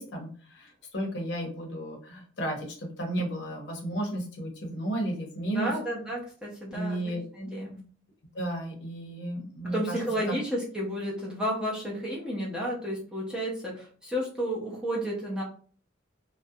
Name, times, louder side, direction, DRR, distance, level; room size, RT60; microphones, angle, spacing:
voice 1, 0.0-5.7 6.7-7.2 8.3-10.3, right 1 dB, 65° left, 1 dB, 0.7 m, -33 dB
voice 2, 5.5-7.8 9.6-15.4, equal, 5° right, -5 dB, 0.6 m, -32 dB
2.3 x 2.1 x 2.7 m, 0.44 s
head